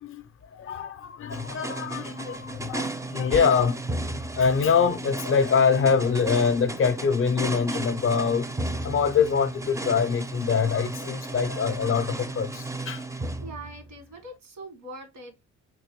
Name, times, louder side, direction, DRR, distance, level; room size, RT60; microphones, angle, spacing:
voice 1, 0.0-3.8 4.4-8.5 8.8-13.0, left 6 dB, 45° left, 0.5 m, -24 dB
sound 1, 1.3-14.0, right 2 dB, 10° right, 0.4 m, -34 dB
voice 2, 13.1-15.4, right 2 dB, 85° right, 1.3 m, -43 dB
3.8 x 2.6 x 3.0 m
cardioid pair, 90°, 30 cm